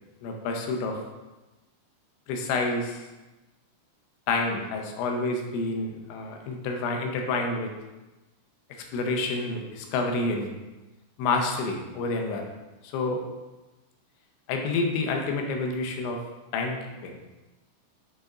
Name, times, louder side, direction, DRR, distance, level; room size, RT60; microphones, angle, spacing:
voice 1, 0.2-1.0 2.3-3.0 4.3-7.7 8.7-10.5 11.2-12.5 12.8-13.2 14.5-16.2 16.5-17.2, left 3 dB, 85° left, 2 dB, 3.2 m, -28 dB
7.6 x 5.2 x 2.4 m, 1.1 s
omnidirectional pair, 5.2 m